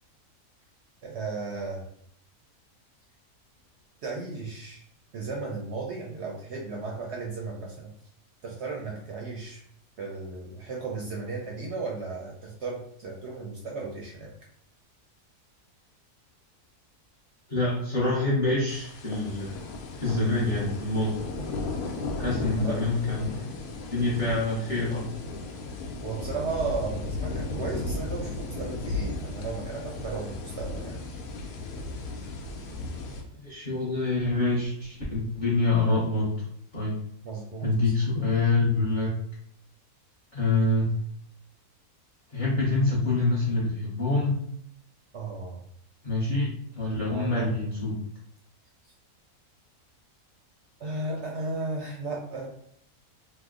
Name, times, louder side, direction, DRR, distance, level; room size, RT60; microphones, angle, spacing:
voice 1, 1.0-1.8 4.0-4.8 5.1-7.9 8.4-9.6 10.0-14.3 22.6-22.8 26.0-31.0 37.2-37.9 45.1-45.6 47.1-47.5 50.8-52.5, right 3 dB, 65° right, -2 dB, 0.7 m, -35 dB
voice 2, 17.5-19.6 20.0-21.2 22.2-23.5 23.9-25.0 33.3-36.3 36.7-37.0 37.6-39.1 40.3-40.9 42.3-44.4 46.0-47.9, left 2 dB, 40° left, -7 dB, 0.7 m, -26 dB
sound 1, 18.7-33.2, left 2 dB, 85° left, 1.1 m, -35 dB
3.0 x 2.0 x 3.5 m, 0.67 s
omnidirectional pair, 1.6 m